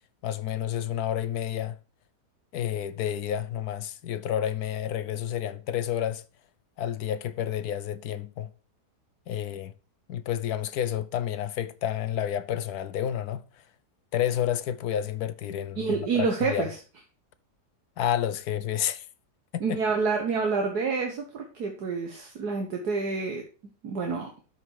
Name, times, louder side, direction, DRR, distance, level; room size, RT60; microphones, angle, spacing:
voice 1, 0.2-1.8 2.5-6.2 6.8-8.5 9.3-9.7 10.1-13.4 14.1-15.9 16.1-16.6 18.0-19.1 19.5-19.8, left 10 dB, 75° left, 1.2 m, -30 dB
voice 2, 15.8-16.7 19.6-23.4 23.8-24.3, right 4 dB, 75° right, 1.9 m, -28 dB
13.0 x 5.5 x 4.8 m
omnidirectional pair, 1.7 m